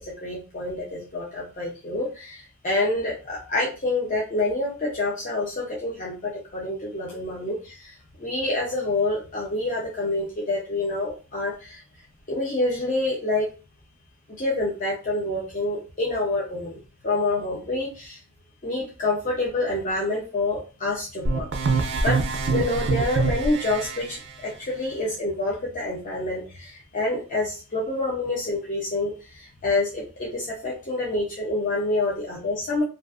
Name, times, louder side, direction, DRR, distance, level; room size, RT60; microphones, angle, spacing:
voice 1, 0.0-11.8 12.3-13.5 14.4-18.2 18.6-21.5 21.7-22.2 22.5-32.8, left 2 dB, 35° left, -4 dB, 0.6 m, -27 dB
sound 1, 21.2-24.0, right 4 dB, 55° right, 0.4 m, -24 dB
2.5 x 2.4 x 2.4 m, 0.32 s
head